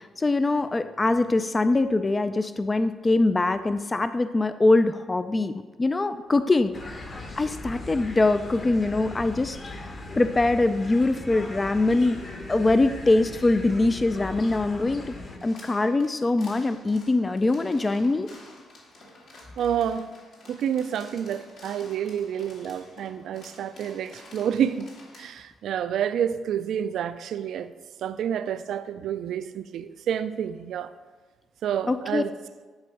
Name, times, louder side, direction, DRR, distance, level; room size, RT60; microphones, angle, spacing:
voice 1, 0.0-12.2 12.5-15.2 15.4-18.3 31.9-32.2, left 2 dB, 25° left, 0.3 m, -23 dB
sound 1, 6.7-15.4, left 2 dB, 40° left, 1.3 m, -39 dB
sound 2, 15.4-25.4, left 2 dB, 70° left, 2.2 m, -50 dB
voice 2, 19.6-20.1 20.5-24.9 25.2-27.7 28.0-30.9 31.6-32.3, right 9 dB, 75° right, 0.4 m, -29 dB
10.5 x 4.3 x 4.8 m
cardioid pair, 90°, 0 cm